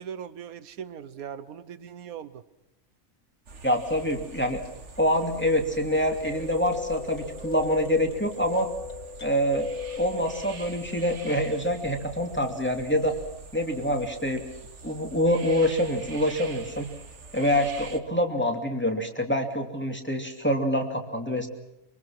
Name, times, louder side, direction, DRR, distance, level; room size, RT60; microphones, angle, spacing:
voice 1, 0.0-2.4, right 8 dB, 85° right, 14 dB, 1.4 m, -39 dB
sound 1, 3.5-18.0, right 4 dB, 55° right, 1.9 m, -44 dB
voice 2, 3.6-4.6 5.0-8.7 9.2-9.7 10.0-13.2 13.5-14.5 14.8-16.9 17.3-21.5, equal, 10° left, 3 dB, 2.7 m, -26 dB
sound 2, 6.3-11.4, left 5 dB, 85° left, 2.3 m, -37 dB
24.0 x 24.0 x 6.0 m, 0.93 s
omnidirectional pair, 1.5 m